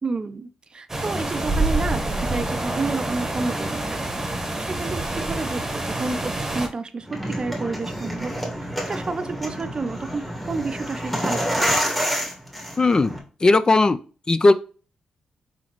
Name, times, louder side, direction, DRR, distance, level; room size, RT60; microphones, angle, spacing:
voice 1, 0.0-4.0 4.6-11.9, right 3 dB, 40° right, 11 dB, 0.5 m, -30 dB
sound 1, 0.9-6.7, right 2 dB, 20° right, 1.1 m, -27 dB
sound 2, 7.0-13.2, equal, 5° left, 1.5 m, -28 dB
voice 2, 12.8-14.0 14.3-14.5, left 3 dB, 35° left, 13 dB, 0.4 m, -17 dB
4.3 x 3.9 x 3.0 m, 0.37 s
supercardioid pair, 55°, 2 cm